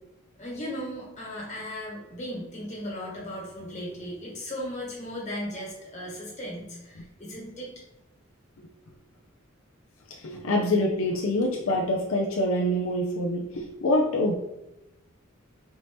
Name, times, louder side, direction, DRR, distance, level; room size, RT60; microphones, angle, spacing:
voice 1, 0.4-7.7, equal, 35° left, -4 dB, 1.5 m, -36 dB
voice 2, 10.2-14.3, left 1 dB, 75° left, 0 dB, 0.5 m, -25 dB
4.4 x 2.7 x 3.4 m, 0.90 s
head